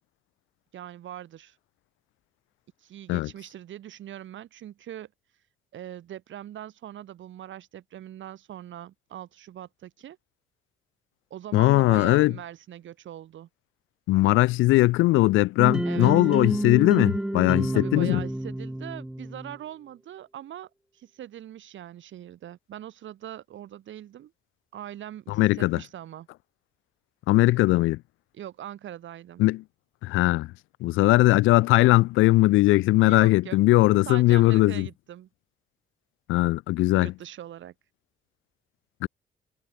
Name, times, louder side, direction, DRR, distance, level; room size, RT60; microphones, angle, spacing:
voice 1, 0.7-1.6 2.8-5.1 5.7-10.2 11.3-13.5 15.8-16.1 17.7-24.3 24.7-26.3 28.3-29.4 33.0-33.6 34.1-35.3 37.0-37.7, right 11 dB, 75° right, 6.3 m, -41 dB
voice 2, 11.5-12.3 14.1-18.2 25.4-25.8 27.3-28.0 29.4-29.6 30.0-30.5 30.8-34.9 36.3-37.1 39.0-39.1, left 19 dB, 85° left, 0.4 m, -20 dB
sound 1, 15.6-19.6, right 1 dB, 5° right, 0.5 m, -29 dB
cardioid pair, 90°, 20 cm